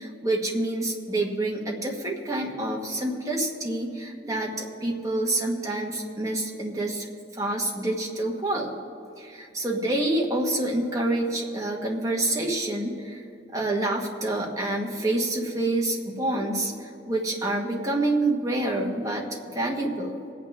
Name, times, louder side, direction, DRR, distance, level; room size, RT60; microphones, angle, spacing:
voice 1, 0.0-7.1 7.3-8.7 9.2-13.2 13.5-20.2, right 2 dB, 20° right, -1 dB, 1.4 m, -27 dB
23.5 x 8.6 x 3.5 m, 2.6 s
head